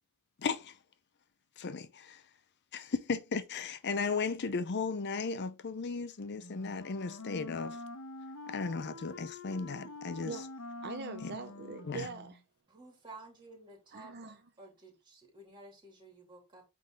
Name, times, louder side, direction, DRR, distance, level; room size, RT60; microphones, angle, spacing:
voice 1, 0.4-0.8 1.6-2.2 2.7-7.8 8.5-10.4 11.2-11.3 11.8-12.1, left 4 dB, 50° left, 0.6 m, -35 dB
Wind instrument woodwind instrument, 6.3-12.4, left 2 dB, 75° left, 1.1 m, -46 dB
voice 2, 10.8-12.4 13.9-14.4, right 4 dB, 45° right, 0.7 m, -42 dB
voice 3, 12.7-14.3 14.6-16.6, right 2 dB, 20° right, 2.9 m, -53 dB
8.7 x 3.8 x 3.8 m
head